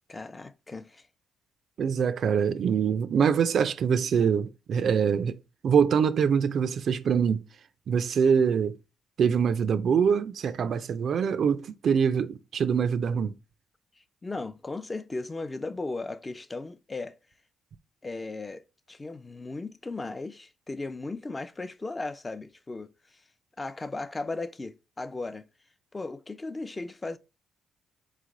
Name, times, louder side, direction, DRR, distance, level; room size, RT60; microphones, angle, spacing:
voice 1, 0.1-1.1 14.2-17.2 18.0-23.2 23.6-25.5 25.9-27.2, left 3 dB, 20° left, 0.4 m, -36 dB
voice 2, 1.8-5.4 5.6-7.4 7.9-8.8 9.2-13.3, right 7 dB, 60° right, 0.4 m, -24 dB
3.8 x 3.2 x 3.7 m
cardioid pair, 90°, 0 cm